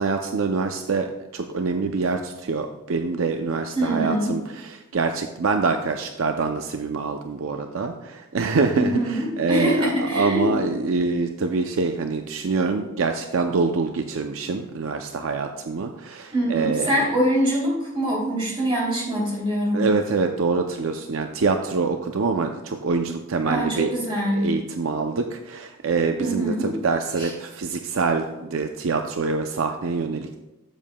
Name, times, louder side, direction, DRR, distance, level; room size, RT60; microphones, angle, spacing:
voice 1, 0.0-17.1 19.7-24.0 24.3-30.4, right 4 dB, 65° right, 6 dB, 0.5 m, -25 dB
voice 2, 3.7-4.3 8.7-10.6 16.3-19.8 23.4-24.5 26.2-26.7 27.2-27.3, equal, 25° right, -5 dB, 2.9 m, -24 dB
12.0 x 7.3 x 2.2 m, 1.0 s
head